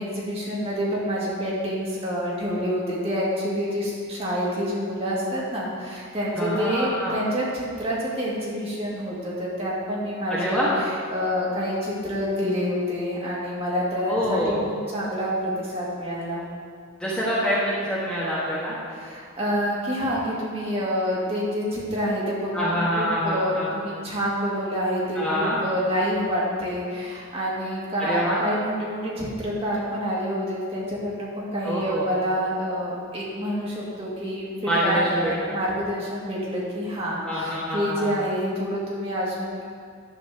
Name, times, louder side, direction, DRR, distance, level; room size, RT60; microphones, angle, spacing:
voice 1, 0.0-10.7 11.1-16.5 18.9-39.6, equal, 30° right, -6 dB, 2.0 m, -27 dB
voice 2, 6.4-7.2 10.3-10.7 14.1-14.6 17.0-18.8 22.5-23.7 25.1-25.6 28.0-28.4 31.6-32.0 34.6-35.6 37.2-38.1, equal, 5° left, -9 dB, 1.3 m, -26 dB
10.5 x 4.2 x 6.7 m, 2.1 s
head